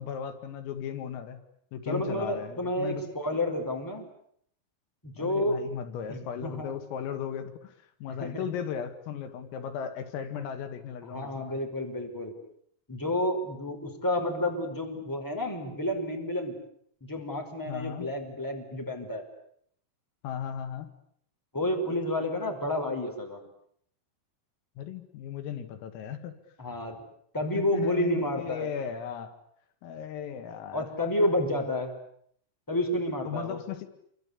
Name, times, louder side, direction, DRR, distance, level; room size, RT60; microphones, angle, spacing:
voice 1, 0.0-1.4 1.7-3.0 5.2-7.7 8.0-11.6 17.7-18.1 20.2-20.9 24.8-26.3 27.6-29.4 29.8-30.9 33.3-33.9, left 8 dB, 85° left, 8 dB, 4.6 m, -36 dB
voice 2, 1.9-4.0 5.0-5.6 6.1-6.7 8.2-8.4 11.1-12.3 12.9-16.6 17.0-19.2 21.5-23.4 26.6-27.0 27.3-28.7 30.7-31.9 32.7-33.6, left 1 dB, 5° left, 3 dB, 4.7 m, -30 dB
27.5 x 25.5 x 8.4 m, 0.67 s
omnidirectional pair, 5.8 m